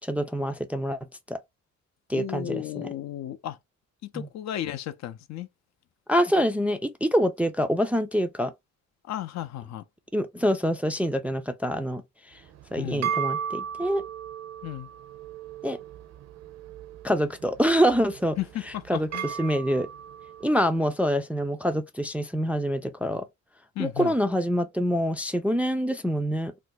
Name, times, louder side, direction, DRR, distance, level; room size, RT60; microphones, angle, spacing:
voice 1, 0.0-1.0 1.3-1.4 2.1-2.9 4.1-4.3 6.1-8.5 10.1-12.0 12.7-14.0 15.6-15.8 17.0-18.4 18.9-19.1 19.4-19.9 20.4-23.2 23.8-26.5, equal, 5° right, 0.3 m, -25 dB
voice 2, 2.1-3.6 4.0-5.5 9.1-9.8 12.8-13.1 14.6-14.9 18.4-19.3 23.8-24.1, left 12 dB, 60° left, 0.5 m, -34 dB
sound 1, 12.4-20.9, right 8 dB, 60° right, 0.6 m, -36 dB
2.6 x 2.1 x 3.8 m
cardioid pair, 90°, 30 cm